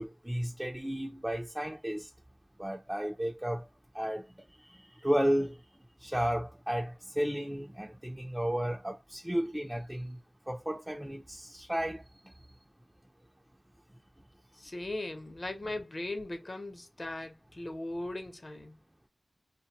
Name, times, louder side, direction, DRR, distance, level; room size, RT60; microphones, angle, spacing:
voice 1, 0.0-2.1 2.6-3.7 3.9-4.3 4.7-5.6 6.0-10.2 10.5-12.0, equal, 15° right, 0.4 m, -33 dB
voice 2, 14.6-18.8, left 2 dB, 50° left, 0.7 m, -38 dB
2.4 x 2.2 x 2.7 m
cardioid pair, 40°, 0 cm